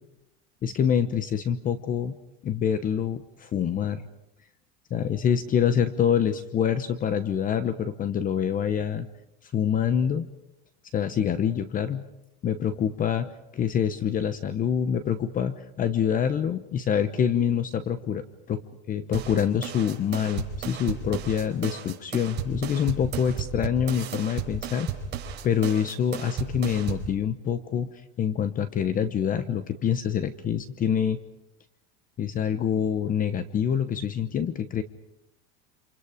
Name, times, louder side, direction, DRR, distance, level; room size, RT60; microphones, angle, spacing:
voice 1, 0.6-2.2 2.4-4.0 4.9-9.1 9.4-10.3 10.9-12.1 12.4-18.6 18.9-24.9 25.4-27.9 28.2-31.2 32.2-34.8, left 8 dB, 25° left, 12 dB, 1.0 m, -26 dB
sound 1, 19.1-27.1, right 7 dB, 30° right, 4.3 m, -34 dB
28.5 x 27.5 x 5.1 m, 0.87 s
supercardioid pair, 150°, 32 cm